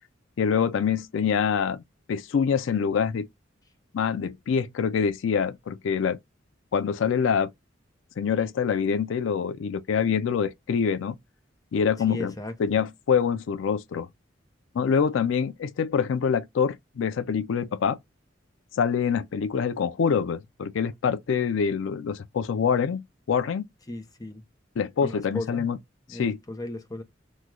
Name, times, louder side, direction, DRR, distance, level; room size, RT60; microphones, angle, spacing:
voice 1, 0.4-1.8 2.1-3.3 3.9-6.2 6.7-7.5 8.2-11.1 11.7-12.3 12.6-14.1 14.7-18.0 18.7-23.0 23.3-23.6 24.8-25.8 26.1-26.4, left 6 dB, 90° left, 0.4 m, -25 dB
voice 2, 12.1-12.8 23.9-24.4 25.0-25.6 26.1-27.0, left 1 dB, 20° left, 0.7 m, -36 dB
3.0 x 2.2 x 3.6 m
head